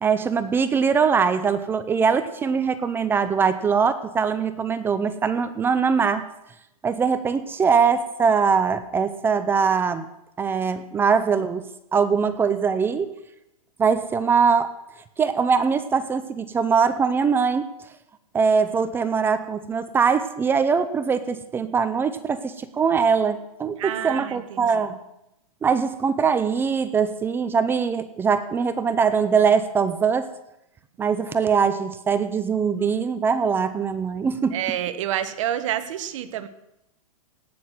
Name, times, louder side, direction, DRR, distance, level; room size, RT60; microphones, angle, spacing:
voice 1, 0.0-6.2 6.8-10.0 10.4-13.1 13.8-14.7 15.2-17.7 18.3-25.0 25.6-30.3 31.0-34.6, right 6 dB, 10° right, 12 dB, 0.5 m, -22 dB
voice 2, 23.8-24.8 34.5-36.5, right 11 dB, 55° right, 11 dB, 1.3 m, -28 dB
17.0 x 6.4 x 9.4 m, 0.87 s
hypercardioid pair, 155°, 19 cm